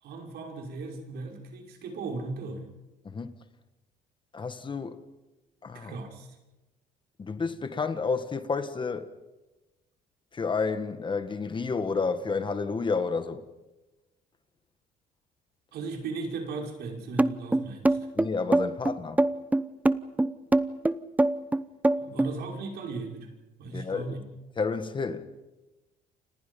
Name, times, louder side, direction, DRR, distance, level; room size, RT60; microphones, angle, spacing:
voice 1, 0.0-2.7 5.7-6.3 15.7-18.1 22.0-23.3 23.6-24.2, right 3 dB, 70° right, 5.5 m, -37 dB
voice 2, 4.3-5.0 5.6-6.0 7.2-9.1 10.3-13.4 18.2-19.2 23.7-24.1 24.6-25.2, left 4 dB, 30° left, 1.7 m, -30 dB
sound 1, 17.2-22.3, right 2 dB, 10° right, 0.8 m, -23 dB
30.0 x 26.0 x 5.5 m
cardioid pair, 110°, 17 cm